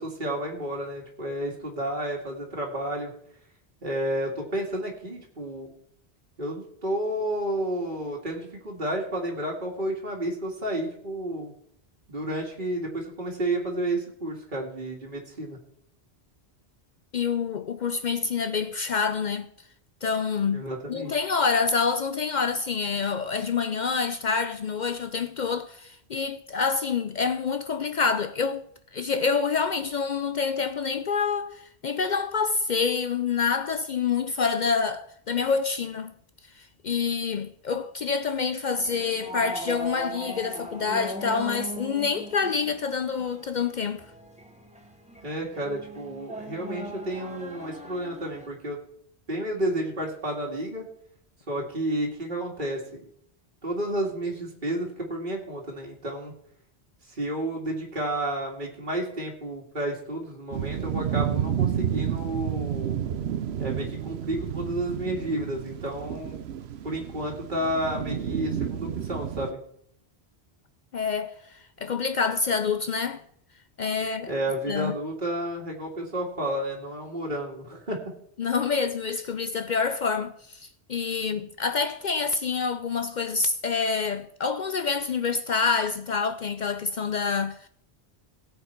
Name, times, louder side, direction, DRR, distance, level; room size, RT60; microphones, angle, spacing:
voice 1, 0.0-3.1 3.8-5.7 6.4-11.6 12.1-15.6 20.5-21.1 45.2-48.8 49.3-50.9 51.5-53.1 53.6-56.3 57.1-63.0 63.6-66.4 66.8-69.6 74.3-78.0, right 1 dB, 50° right, 2.3 m, -31 dB
voice 2, 17.1-19.5 20.0-36.1 36.5-44.1 70.9-73.2 73.8-74.3 74.7-74.9 78.4-87.7, left 5 dB, 55° left, 0.6 m, -27 dB
sound 1, 38.8-48.5, right 1 dB, 5° right, 1.4 m, -39 dB
sound 2, 60.5-69.5, right 9 dB, 80° right, 0.9 m, -30 dB
17.5 x 7.5 x 4.5 m
omnidirectional pair, 1.1 m